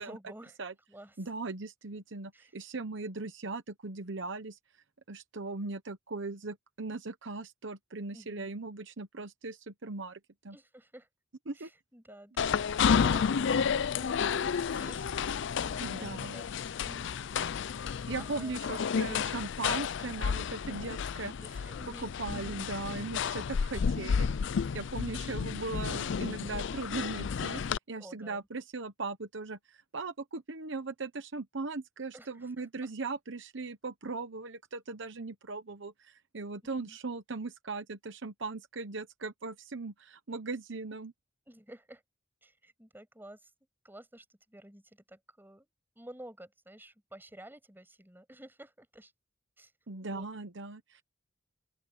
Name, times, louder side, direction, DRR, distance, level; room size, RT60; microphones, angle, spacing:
voice 1, 0.0-0.6 0.9-1.2 2.3-2.5 8.1-8.5 10.5-11.1 11.5-13.6 14.0-17.2 17.8-18.6 20.7-20.8 21.4-22.1 28.0-28.5 32.1-32.9 36.8-37.0 41.5-42.0 42.4-43.5 43.8-45.7 46.0-49.1 49.6-49.7 50.0-50.3, right 1 dB, 10° right, 7.0 m, -52 dB
voice 2, 1.2-4.6 5.1-10.2 10.4-10.6 11.5-11.7 15.8-16.4 18.1-21.6 21.9-24.3 24.7-27.6 27.9-41.1 49.9-51.0, right 3 dB, 65° right, 1.0 m, -39 dB
sound 1, 12.4-27.8, left 6 dB, 65° left, 0.4 m, -31 dB
open air
head